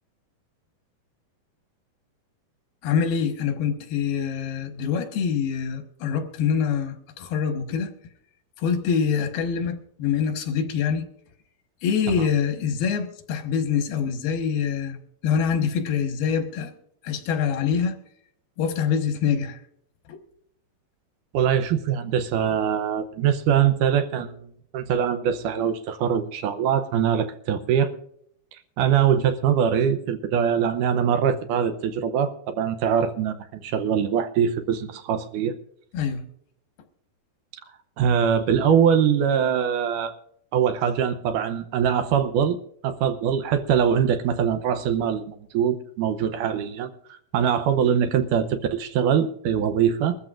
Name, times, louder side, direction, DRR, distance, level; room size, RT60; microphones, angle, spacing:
voice 1, 2.8-7.9 8.6-11.1 11.8-15.0 15.2-16.7 17.0-18.0 18.6-19.6 20.1-20.2 35.9-36.2, left 7 dB, 90° left, 3.3 m, -25 dB
voice 2, 21.3-24.5 24.7-27.9 28.8-35.5 38.0-40.1 40.5-42.6 42.8-50.2, right 8 dB, 75° right, 2.0 m, -23 dB
22.5 x 14.0 x 2.5 m
omnidirectional pair, 4.2 m